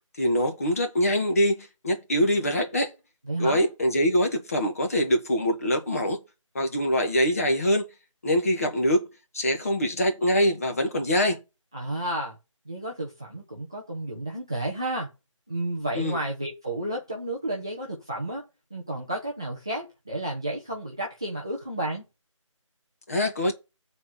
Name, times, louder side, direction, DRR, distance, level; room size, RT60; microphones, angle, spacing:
voice 1, 0.2-2.9 3.4-6.2 6.6-7.8 8.2-9.1 9.3-11.4 16.0-16.2 23.1-23.5, equal, 25° left, 1.8 m, -24 dB
voice 2, 3.3-3.6 11.7-12.4 12.7-15.1 15.5-22.0, right 1 dB, 10° right, 0.6 m, -32 dB
8.3 x 4.4 x 7.1 m
figure-of-eight pair, 175°, 17 cm